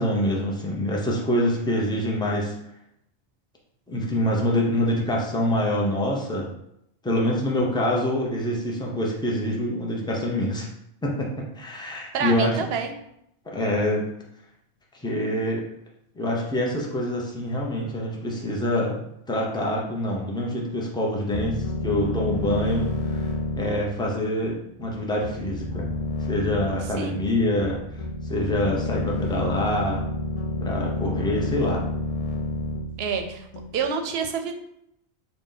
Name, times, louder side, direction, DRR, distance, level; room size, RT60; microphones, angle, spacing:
voice 1, 0.0-2.5 3.9-6.5 7.0-10.7 11.0-12.7 13.5-14.1 14.9-15.6 16.2-19.0 19.3-23.3 23.6-25.9 26.3-30.0 30.6-31.8, left 1 dB, 5° left, -2 dB, 0.5 m, -26 dB
voice 2, 12.1-12.9 27.0-27.2 33.0-33.5 33.7-34.5, right 6 dB, 70° right, 6 dB, 0.8 m, -27 dB
sound 1, 21.3-33.8, left 2 dB, 60° left, 0.3 m, -30 dB
3.8 x 2.4 x 3.9 m, 0.78 s
omnidirectional pair, 1.1 m